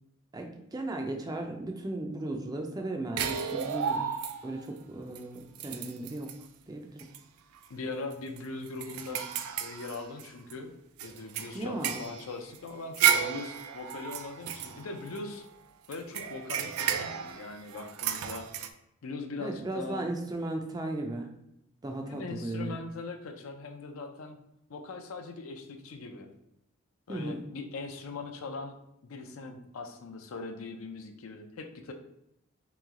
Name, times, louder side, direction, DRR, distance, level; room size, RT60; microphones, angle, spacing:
voice 1, 0.3-4.1 4.4-6.4 6.7-7.1 11.5-12.0 19.4-21.3 21.8-22.8 27.1-27.4, right 2 dB, 20° right, 3 dB, 0.4 m, -36 dB
sound 1, 3.2-4.7 5.2-5.3 5.6-6.4 7.0-7.2 7.6-7.7 8.1-10.5 11.0-15.5 15.9-18.7, right 8 dB, 90° right, 0.3 m, -32 dB
voice 2, 7.7-9.2 9.6-10.7 11.0-15.5 15.9-18.5 19.0-20.1 22.1-24.4 24.7-26.3 27.1-28.7 29.0-31.9, left 3 dB, 75° left, 6 dB, 0.5 m, -40 dB
3.1 x 3.0 x 3.6 m, 0.82 s
head